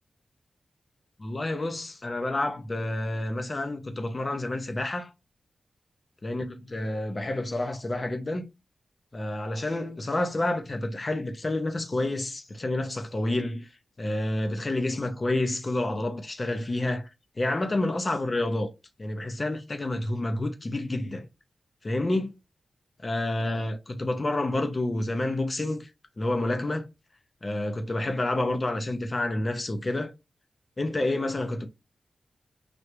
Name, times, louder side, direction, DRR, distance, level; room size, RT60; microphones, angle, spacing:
voice 1, 1.2-5.1 6.2-8.5 9.1-13.7 14.0-17.0 17.4-18.7 19.0-21.3 21.8-22.4 23.0-25.9 26.2-26.9 27.4-30.1 30.8-31.7, left 2 dB, 30° left, 0.6 m, -29 dB
3.3 x 2.6 x 2.9 m
wide cardioid pair, 140°, 0 cm